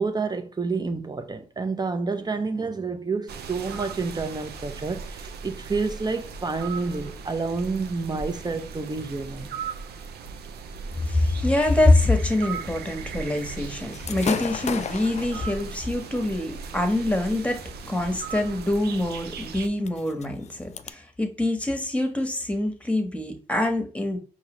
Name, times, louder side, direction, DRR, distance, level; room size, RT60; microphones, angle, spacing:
voice 1, 0.0-9.5, right 4 dB, 25° right, 0.7 m, -29 dB
sound 1, 3.3-19.7, right 6 dB, 80° right, 0.5 m, -38 dB
voice 2, 11.0-17.6 17.9-24.2, left 2 dB, 5° left, 1.2 m, -24 dB
Gunshot gunfire / Fireworks, 13.9-20.9, left 7 dB, 45° left, 0.4 m, -37 dB
4.7 x 2.8 x 3.0 m
supercardioid pair, 55°, 16 cm